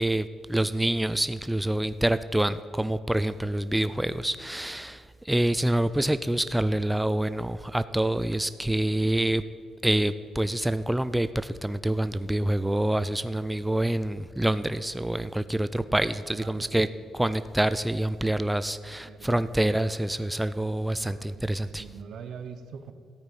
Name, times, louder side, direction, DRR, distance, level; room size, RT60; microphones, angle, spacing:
voice 1, 0.0-9.4 9.8-16.9 17.1-21.9, right 1 dB, 5° right, 13 dB, 0.4 m, -26 dB
voice 2, 16.4-17.1 19.1-19.5 21.0-21.4 21.8-22.9, right 6 dB, 70° right, 10 dB, 0.9 m, -42 dB
12.5 x 8.9 x 5.4 m, 2.3 s
cardioid pair, 90°, 0 cm